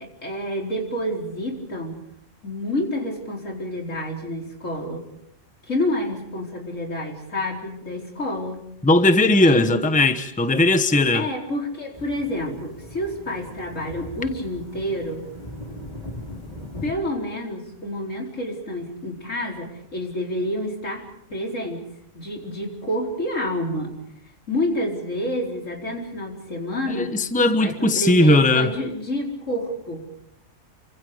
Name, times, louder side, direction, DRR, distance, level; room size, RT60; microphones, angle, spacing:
voice 1, 0.0-2.0 2.4-5.0 5.7-8.7 9.2-9.8 11.1-15.3 16.8-21.9 22.1-24.0 24.5-30.0, left 1 dB, 75° left, 4.8 m, -29 dB
voice 2, 8.8-11.3 26.9-28.7, left 2 dB, 5° left, 1.1 m, -18 dB
sound 1, 11.9-16.9, left 1 dB, 35° left, 5.2 m, -39 dB
28.5 x 25.5 x 5.2 m
omnidirectional pair, 1.3 m